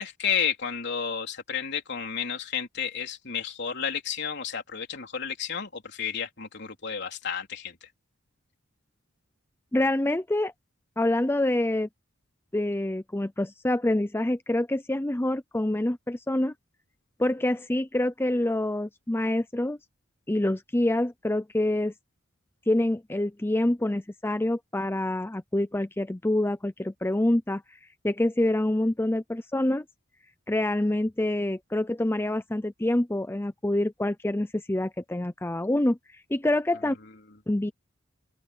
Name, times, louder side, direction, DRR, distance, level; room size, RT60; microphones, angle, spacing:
voice 1, 0.0-7.9 36.8-37.1, left 7 dB, 60° left, 3.9 m, -31 dB
voice 2, 9.7-10.5 11.0-11.9 12.5-16.5 17.2-19.8 20.3-21.9 22.7-27.6 28.0-29.8 30.5-36.0 36.3-36.9 37.5-37.7, left 1 dB, 10° left, 0.6 m, -26 dB
open air
head